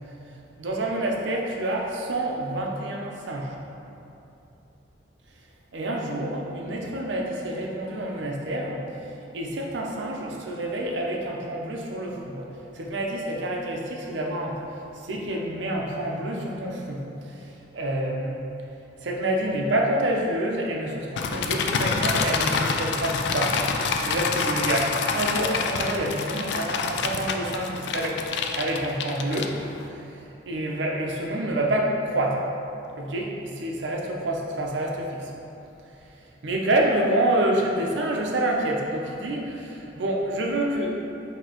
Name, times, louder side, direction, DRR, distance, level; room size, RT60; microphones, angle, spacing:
voice 1, 0.6-3.5 5.7-8.8 9.3-12.5 12.7-14.6 15.0-17.4 17.7-18.4 19.0-23.6 24.0-28.2 28.6-29.6 29.9-30.0 30.5-32.4 33.0-35.3 36.4-41.0, right 1 dB, 80° right, -1 dB, 0.6 m, -27 dB
sound 1, 21.2-29.9, left 5 dB, 70° left, 0.3 m, -27 dB
6.0 x 2.8 x 2.9 m, 2.8 s
head